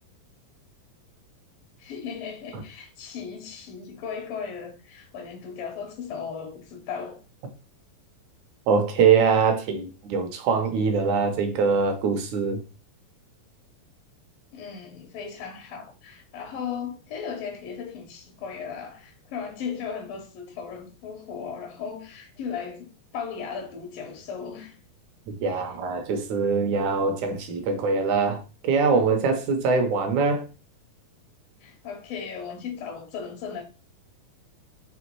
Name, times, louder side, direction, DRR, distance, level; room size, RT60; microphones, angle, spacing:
voice 1, 1.8-7.2 14.5-24.8 25.4-25.7 31.6-33.6, left 6 dB, 75° left, 2.6 m, -36 dB
voice 2, 8.7-12.6 25.3-30.4, right 5 dB, 70° right, 1.9 m, -23 dB
6.1 x 3.4 x 4.5 m
omnidirectional pair, 4.1 m